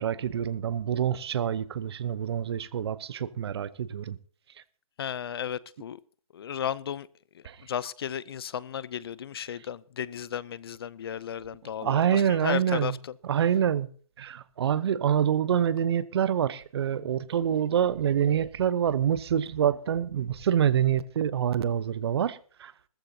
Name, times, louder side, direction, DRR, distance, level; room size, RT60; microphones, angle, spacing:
voice 1, 0.0-4.2 7.4-7.5 11.8-12.9 13.3-13.9 14.2-22.7, right 9 dB, 45° right, 0.8 m, -26 dB
voice 2, 5.0-6.0 6.3-7.1 7.3-13.2, left 9 dB, 45° left, 0.5 m, -34 dB
18.5 x 14.5 x 2.8 m
hypercardioid pair, 155°, 18 cm